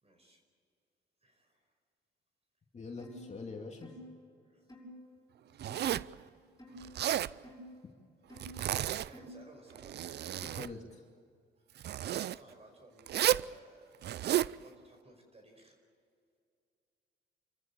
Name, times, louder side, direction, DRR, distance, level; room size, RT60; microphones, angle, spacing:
voice 1, 0.0-0.4 1.2-1.6 4.5-4.6 8.9-10.0 11.9-13.9 14.6-15.8, right 1 dB, 30° right, 4 dB, 5.1 m, -57 dB
voice 2, 2.7-3.9 10.4-10.9, left 4 dB, 35° left, 1 dB, 2.6 m, -44 dB
sound 1, 3.0-3.3 3.8-4.1 4.7-4.9 5.7-6.0 6.6-6.8 7.4-7.7 8.3-8.6 9.1-9.4, equal, 15° left, 6.6 m, -50 dB
Zipper (clothing), 5.6-6.2 6.8-7.3 8.4-9.1 9.7-10.7 11.8-12.4 13.1-13.5 14.0-14.5, right 12 dB, 60° right, 0.5 m, -32 dB
28.0 x 14.5 x 8.6 m, 2.3 s
cardioid pair, 90°, 20 cm